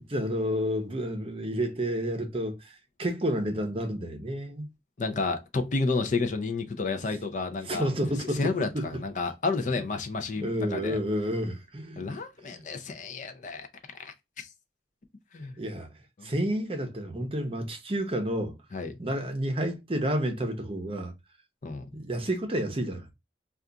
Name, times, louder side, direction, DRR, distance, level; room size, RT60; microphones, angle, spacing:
voice 1, 0.0-4.6 7.7-8.8 10.4-12.0 12.5-12.6 15.6-15.9 16.2-18.5 19.0-21.1 21.9-23.1, equal, 30° right, 0.7 m, -30 dB
voice 2, 5.0-7.9 8.3-11.0 12.0-13.7 14.0-14.5 15.3-15.6 16.2-16.3 18.7-18.9 21.6-21.9, left 3 dB, 45° left, 0.4 m, -31 dB
2.4 x 2.3 x 3.7 m
head